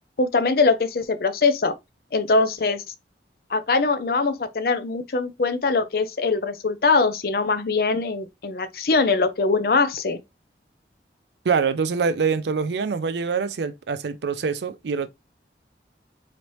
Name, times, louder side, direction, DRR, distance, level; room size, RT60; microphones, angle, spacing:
voice 1, 0.2-1.7 2.1-2.8 3.5-10.2, left 4 dB, 55° left, 0.5 m, -22 dB
voice 2, 11.4-15.1, right 5 dB, 70° right, 0.4 m, -24 dB
4.0 x 3.2 x 3.0 m
head